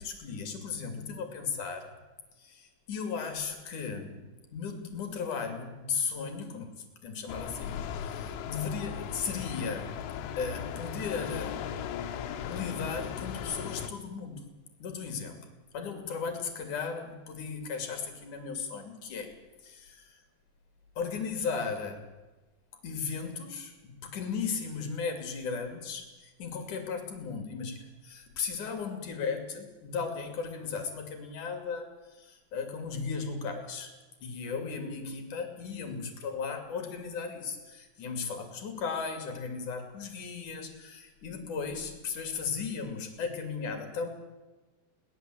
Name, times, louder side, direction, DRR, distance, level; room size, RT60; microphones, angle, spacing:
voice 1, 0.0-2.0 2.4-10.0 10.4-11.6 12.4-14.5 14.8-15.5 15.7-19.3 19.6-20.2 21.0-22.0 22.8-33.9 34.2-44.1, left 5 dB, 45° left, 6 dB, 3.5 m, -36 dB
sound 1, 7.3-13.9, left 8 dB, 75° left, 3.5 m, -37 dB
21.5 x 18.5 x 7.9 m, 1.1 s
omnidirectional pair, 5.9 m